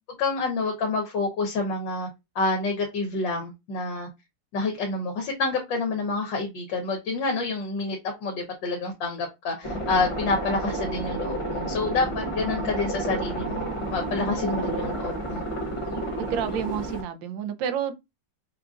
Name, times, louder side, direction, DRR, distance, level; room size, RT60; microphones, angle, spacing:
voice 1, 0.2-2.1 2.3-4.1 4.5-15.4, left 3 dB, 80° left, 1.6 m, -28 dB
sound 1, 9.6-17.0, right 1 dB, 50° left, 0.3 m, -30 dB
voice 2, 16.2-18.0, right 8 dB, 90° right, 1.4 m, -30 dB
5.8 x 2.4 x 2.4 m
omnidirectional pair, 2.0 m